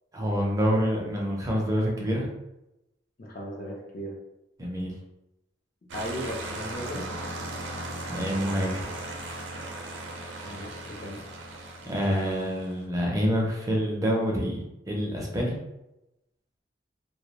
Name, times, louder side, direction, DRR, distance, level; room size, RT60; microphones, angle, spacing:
voice 1, 0.1-2.3 4.6-4.9 8.1-8.8 11.9-14.6 14.9-15.5, equal, 20° right, -2 dB, 0.5 m, -27 dB
voice 2, 3.2-4.1 5.9-7.1 10.4-11.2, equal, 50° left, -1 dB, 0.5 m, -36 dB
sound 1, 5.9-12.8, right 1 dB, 85° right, 0.5 m, -37 dB
2.2 x 2.0 x 2.8 m, 0.92 s
head